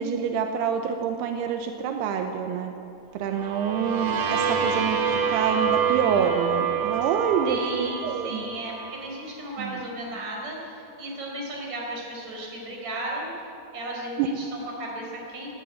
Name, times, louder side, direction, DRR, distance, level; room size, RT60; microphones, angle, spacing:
voice 1, 0.0-2.7 3.1-5.0 5.3-8.5 9.6-9.8 14.2-14.3, right 7 dB, 80° right, 5 dB, 2.5 m, -27 dB
sound 1, 3.3-9.2, right 7 dB, 55° right, 3.2 m, -27 dB
voice 2, 7.5-13.3 13.7-15.5, right 1 dB, 35° right, -2 dB, 5.3 m, -35 dB
20.0 x 16.5 x 8.9 m, 2.8 s
omnidirectional pair, 5.8 m